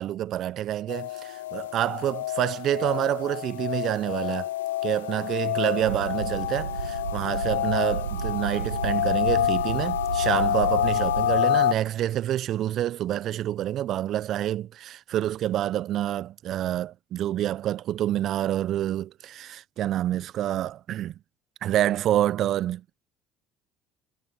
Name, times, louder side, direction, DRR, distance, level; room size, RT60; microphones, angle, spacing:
voice 1, 0.0-4.5 4.8-21.1 21.6-23.0, right 12 dB, 55° right, 0.8 m, -27 dB
sound 1, 0.9-11.7, left 13 dB, 80° left, 0.7 m, -28 dB
sound 2, 5.8-11.4, right 7 dB, 90° right, 1.1 m, -33 dB
hypercardioid pair, 65°, 0 cm